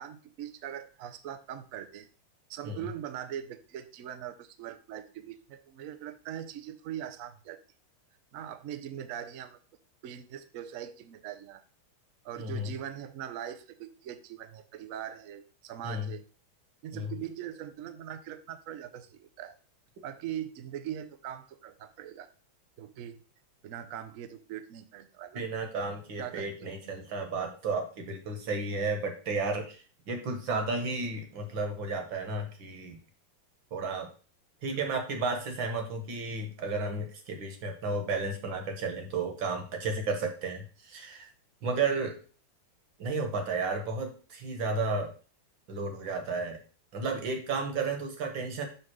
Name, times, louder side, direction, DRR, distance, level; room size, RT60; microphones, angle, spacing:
voice 1, 0.0-2.1 2.5-7.6 8.3-9.6 10.0-11.6 12.2-16.2 16.8-19.6 20.0-22.3 22.8-23.2 23.6-25.4 26.2-26.7 34.7-34.9, right 10 dB, 90° right, 10 dB, 0.7 m, -41 dB
voice 2, 12.4-12.7 15.8-16.1 16.9-17.1 25.3-33.0 33.7-34.1 34.6-41.3 41.6-42.2 43.0-45.1 45.7-46.6 46.9-48.6, right 3 dB, 65° right, 4 dB, 2.0 m, -33 dB
6.7 x 3.7 x 6.2 m, 0.38 s
omnidirectional pair, 2.3 m